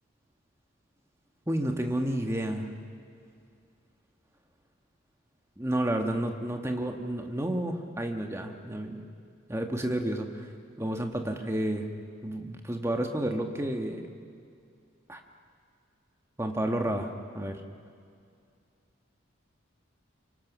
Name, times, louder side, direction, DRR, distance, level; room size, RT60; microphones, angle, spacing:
voice 1, 1.5-2.7 5.6-9.0 9.5-10.5 10.8-11.9 12.2-14.0 15.1-15.2 16.4-17.1 17.3-17.6, right 1 dB, 15° right, 4 dB, 1.4 m, -30 dB
24.0 x 23.5 x 6.2 m, 2.3 s
head